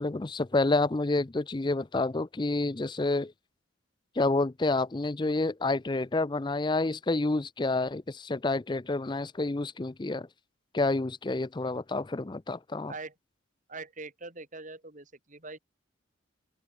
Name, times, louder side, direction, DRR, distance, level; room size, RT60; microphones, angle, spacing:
voice 1, 0.0-3.3 4.2-10.3 10.7-12.9, left 2 dB, 25° left, 0.5 m, -29 dB
voice 2, 13.7-15.6, right 3 dB, 40° right, 3.1 m, -42 dB
head